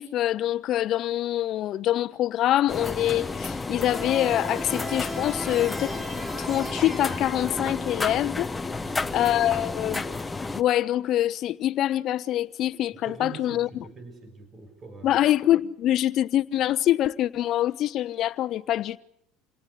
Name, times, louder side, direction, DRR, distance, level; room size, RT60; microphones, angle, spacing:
voice 1, 0.0-6.0 6.4-8.5 9.1-10.0 10.5-13.8 15.0-19.0, left 13 dB, 55° left, 1.0 m, -25 dB
sound 1, 2.7-10.6, left 3 dB, 15° left, 1.1 m, -32 dB
sound 2, 3.9-8.2, equal, 5° right, 4.0 m, -37 dB
voice 2, 8.7-9.2 9.5-9.7 13.0-15.2, right 3 dB, 30° right, 6.3 m, -44 dB
28.0 x 19.0 x 8.2 m
supercardioid pair, 95°, 0 cm